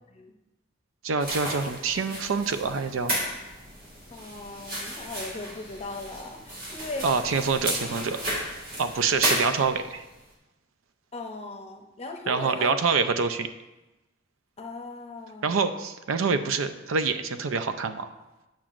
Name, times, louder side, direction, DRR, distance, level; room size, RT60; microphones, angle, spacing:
voice 1, 1.0-3.2 7.0-8.2 8.8-10.0 12.3-13.5 15.4-18.1, right 5 dB, 80° right, 10 dB, 0.5 m, -26 dB
sound 1, 1.2-10.0, right 1 dB, 50° right, 1.8 m, -33 dB
voice 2, 4.1-7.1 11.1-12.7 14.6-15.8, left 2 dB, 30° left, 4 dB, 0.7 m, -38 dB
8.8 x 6.0 x 2.5 m, 1.0 s
head